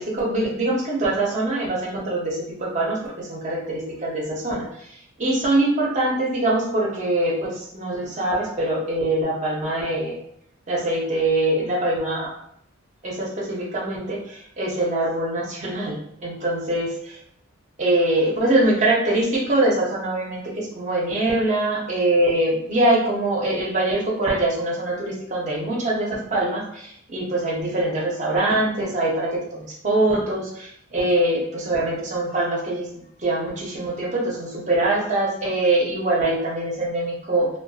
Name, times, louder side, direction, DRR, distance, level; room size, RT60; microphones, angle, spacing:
voice 1, 0.0-10.2 10.7-12.3 13.0-17.2 17.8-32.9 33.2-37.5, right 1 dB, 35° right, -4 dB, 0.6 m, -23 dB
2.5 x 2.2 x 2.3 m, 0.72 s
head